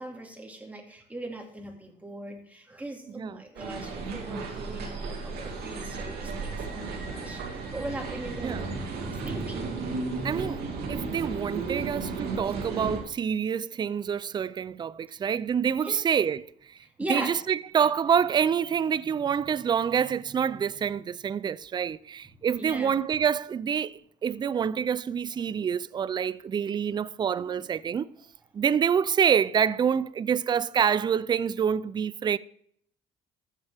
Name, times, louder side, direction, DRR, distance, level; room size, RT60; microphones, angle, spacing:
voice 1, 0.0-8.7 9.2-9.6 15.1-15.2 15.8-16.1 17.0-17.3 22.6-22.9 25.6-25.7 27.4-27.5, right 1 dB, 10° right, 2.2 m, -39 dB
sound 1, 3.5-13.0, right 4 dB, 70° right, 2.5 m, -34 dB
voice 2, 10.2-10.6 10.9-16.4 17.1-28.1 28.5-32.4, right 7 dB, 25° right, 0.4 m, -27 dB
14.5 x 7.4 x 3.4 m
cardioid pair, 110°, 17 cm